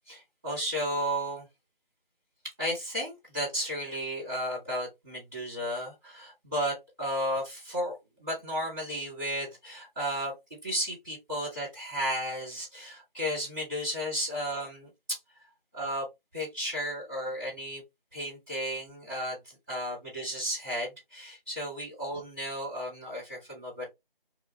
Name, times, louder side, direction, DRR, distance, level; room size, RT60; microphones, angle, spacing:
voice 1, 0.1-1.5 2.6-10.3 10.6-15.2 15.7-16.0 16.3-17.8 18.1-23.9, equal, 5° right, -10 dB, 1.6 m, -33 dB
2.8 x 2.5 x 3.0 m, 0.20 s
figure-of-eight pair, 175°, 29 cm